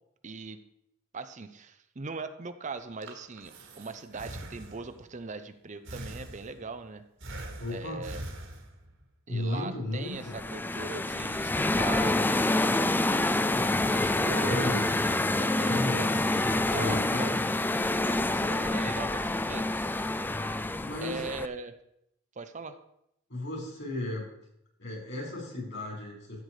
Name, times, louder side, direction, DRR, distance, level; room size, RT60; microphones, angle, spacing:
voice 1, 0.2-0.6 1.1-7.0 7.7-8.2 9.3-12.9 13.4-17.4 18.3-20.0 21.0-21.7 22.4-22.8, right 4 dB, 35° right, 10 dB, 0.7 m, -40 dB
Breathing, 2.8-5.1 5.9-6.8 7.2-9.0, right 1 dB, 60° right, 2.0 m, -43 dB
voice 2, 7.6-8.0 9.3-10.4 14.5-14.8 15.7-16.3 16.7-17.5 20.8-21.2 23.3-24.3 24.8-26.4, left 2 dB, 60° left, -1 dB, 6.0 m, -34 dB
sound 1, 10.1-21.5, left 2 dB, 10° left, 0.4 m, -27 dB
14.0 x 8.0 x 5.0 m, 0.78 s
head